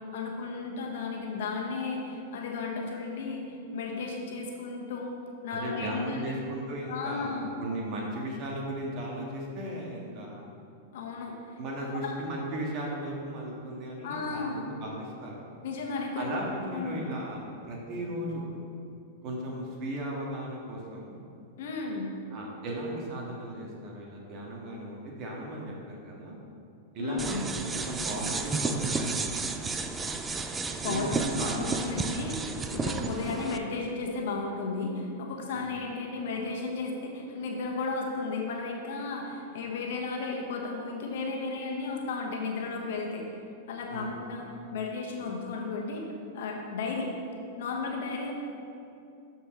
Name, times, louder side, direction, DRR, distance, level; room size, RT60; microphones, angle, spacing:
voice 1, 0.1-5.1 5.4-6.3 6.9-7.5 10.9-11.3 12.0-12.2 14.0-14.6 15.6-17.0 21.6-22.1 27.0-27.4 30.6-31.1 31.4-43.2 43.7-44.5 44.7-47.1 47.6-48.3, left 4 dB, 65° left, 0 dB, 1.3 m, -34 dB
voice 2, 5.5-10.4 11.5-15.4 16.1-18.5 19.2-21.2 22.3-26.4 26.9-29.5 30.8-31.7 32.0-32.1 35.5-35.7 43.9-44.2, right 1 dB, 45° right, -2 dB, 1.7 m, -36 dB
sound 1, 27.2-33.6, right 4 dB, 15° right, 0.4 m, -32 dB
12.5 x 4.5 x 3.2 m, 2.6 s
hypercardioid pair, 100°, 0 cm